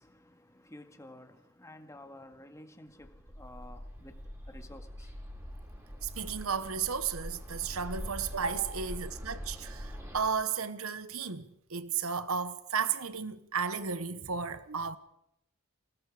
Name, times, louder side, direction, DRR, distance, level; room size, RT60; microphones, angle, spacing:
voice 1, 0.0-5.1, left 1 dB, 15° left, 2.0 m, -52 dB
Bird, 3.0-10.3, equal, 15° right, 4.4 m, -43 dB
voice 2, 6.0-15.0, right 6 dB, 70° right, 1.1 m, -34 dB
28.5 x 19.0 x 4.9 m
head